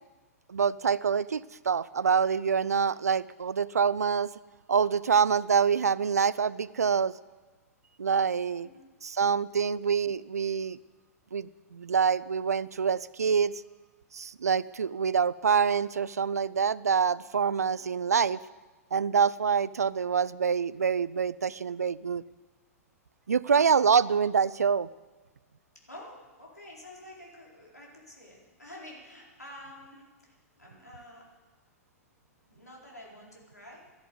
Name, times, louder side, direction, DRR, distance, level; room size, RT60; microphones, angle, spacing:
voice 1, 0.5-4.3 4.7-7.2 8.0-8.7 9.0-10.8 11.3-13.5 14.1-18.4 18.9-22.2 23.3-24.9, right 6 dB, 75° right, 20 dB, 0.5 m, -26 dB
voice 2, 8.6-8.9 17.7-18.0 25.8-31.3 32.5-33.8, left 1 dB, 85° left, -3 dB, 4.4 m, -49 dB
13.0 x 11.5 x 8.0 m, 1.2 s
figure-of-eight pair, 105°, 9 cm